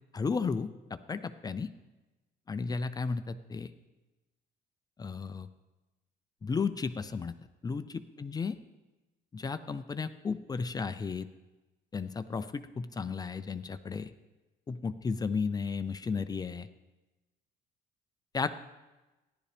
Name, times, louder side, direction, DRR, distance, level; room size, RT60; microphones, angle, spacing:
voice 1, 0.1-1.7 2.5-3.7 5.0-5.5 6.4-7.3 7.6-8.5 9.3-11.3 11.9-14.1 14.7-16.7 18.3-18.5, left 5 dB, 25° left, 11 dB, 0.5 m, -34 dB
14.0 x 11.0 x 3.4 m, 1.1 s
cardioid pair, 110°, 17 cm